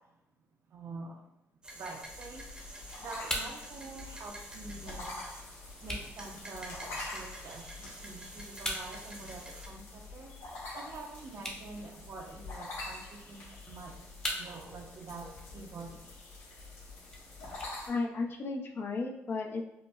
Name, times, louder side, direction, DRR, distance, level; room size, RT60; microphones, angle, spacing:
voice 1, 0.7-1.2 1.7-5.2 5.8-10.3 10.7-13.9 14.3-16.1, right 3 dB, 60° right, 1 dB, 0.7 m, -46 dB
sound 1, 1.6-9.7, right 1 dB, 15° right, 0.8 m, -49 dB
sound 2, 2.0-17.9, left 2 dB, 65° left, 1.3 m, -46 dB
sound 3, 2.4-18.4, equal, 15° left, 0.8 m, -45 dB
voice 2, 17.9-19.6, left 3 dB, 45° left, 2 dB, 0.5 m, -34 dB
5.0 x 2.0 x 2.3 m, 0.86 s
cardioid pair, 80°, 5 cm